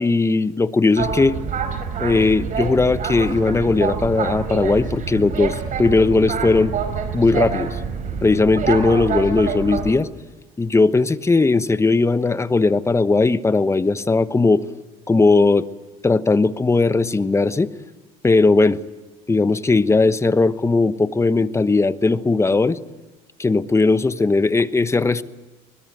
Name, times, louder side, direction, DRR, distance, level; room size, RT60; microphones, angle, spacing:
voice 1, 0.0-1.4 2.0-6.7 7.1-7.8 8.2-10.1 10.6-14.6 15.1-15.7 16.0-17.7 18.2-18.8 19.3-22.8 23.4-25.2, left 3 dB, 15° left, 13 dB, 1.1 m, -18 dB
Boat Water vehicle, 1.0-9.9, right 6 dB, 50° right, 4.6 m, -26 dB
23.0 x 21.0 x 9.3 m, 1.2 s
cardioid pair, 100°, 17 cm